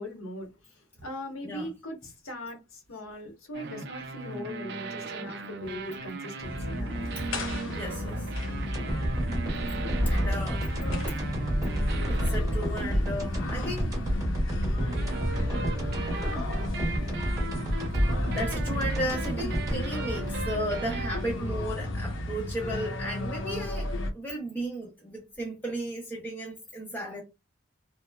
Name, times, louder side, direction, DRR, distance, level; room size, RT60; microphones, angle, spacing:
voice 1, 0.0-6.9, left 1 dB, 90° left, 1.0 m, -40 dB
voice 2, 1.4-1.7 6.9-7.3 7.7-8.3 9.6-10.6 11.1-11.2 12.1-13.9 18.3-27.2, equal, 10° left, 0.5 m, -35 dB
sound 1, 3.5-13.0 14.6-21.3, right 4 dB, 55° right, 0.4 m, -38 dB
sound 2, 6.4-24.1, left 1 dB, 70° left, 0.6 m, -33 dB
sound 3, 8.7-21.0 21.3-21.4, equal, 20° right, 0.9 m, -31 dB
3.0 x 2.0 x 2.2 m
head